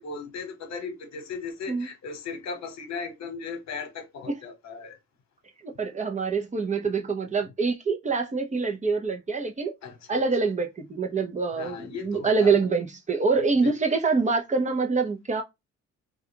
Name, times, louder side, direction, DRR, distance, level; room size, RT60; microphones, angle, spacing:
voice 1, 0.0-5.0 9.8-10.2 11.5-12.5 13.6-13.8, left 5 dB, 60° left, 1.0 m, -37 dB
voice 2, 5.6-9.7 10.1-15.4, right 4 dB, 25° right, 0.7 m, -25 dB
2.3 x 2.3 x 2.8 m
cardioid pair, 90°, 30 cm